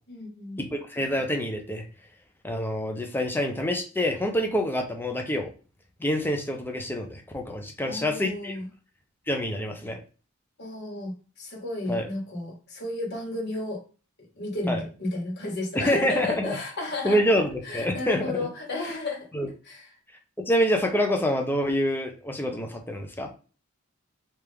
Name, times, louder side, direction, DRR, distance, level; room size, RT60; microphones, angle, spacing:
voice 1, 0.1-0.6 7.8-8.7 10.6-11.1 11.4-13.8 14.4-17.2 17.6-19.3 19.6-19.8, left 2 dB, 55° left, -2 dB, 1.6 m, -32 dB
voice 2, 0.6-1.8 2.4-5.5 6.0-8.6 9.3-10.0 11.9-12.1 14.7-14.8 15.7-16.6 17.0-18.5 19.3-19.5 20.4-23.3, equal, 10° left, 2 dB, 0.6 m, -26 dB
3.4 x 2.8 x 3.4 m, 0.36 s
head